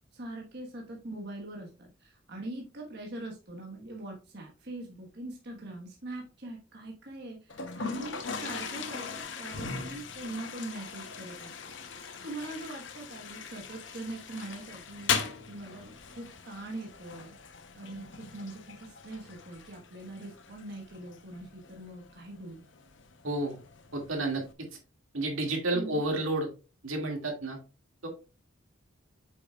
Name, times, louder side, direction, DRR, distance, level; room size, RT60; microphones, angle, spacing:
voice 1, 0.1-11.7 12.2-15.1 15.5-17.4 17.7-22.6 25.7-26.0, right 2 dB, 55° right, -1 dB, 1.4 m, -42 dB
Toilet flush, 7.5-24.5, left 6 dB, 65° left, 0.9 m, -40 dB
voice 2, 23.2-23.6 23.9-24.7 25.1-26.5 26.8-27.6 28.0-28.1, right 2 dB, 85° right, 1 dB, 2.2 m, -31 dB
8.1 x 5.8 x 2.4 m, 0.32 s
head